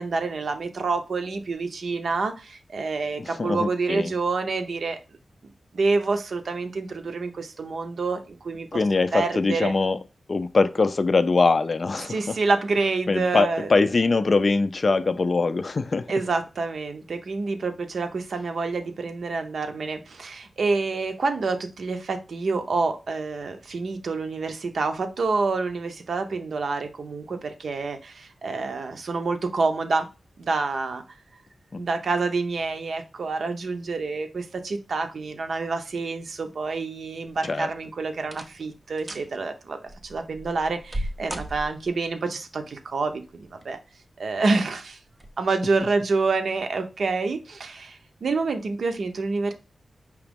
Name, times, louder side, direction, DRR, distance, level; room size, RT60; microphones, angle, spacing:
voice 1, 0.0-5.0 5.7-8.8 9.1-9.7 12.1-13.7 16.1-30.1 30.4-31.0 31.8-43.8 44.2-45.0 45.4-49.5, right 3 dB, 65° right, 0.7 m, -27 dB
voice 2, 3.2-4.1 8.7-10.0 10.3-12.4 13.1-16.1 31.7-31.8 37.4-37.7, left 3 dB, 40° left, 0.3 m, -22 dB
sound 1, 37.3-37.7 38.2-38.7 39.0-39.3 39.9-42.1 43.3-43.8 44.3-44.4 45.1-45.3 45.7-45.8, right 1 dB, 20° right, 0.5 m, -36 dB
4.9 x 2.9 x 3.5 m
wide cardioid pair, 160°, 0 cm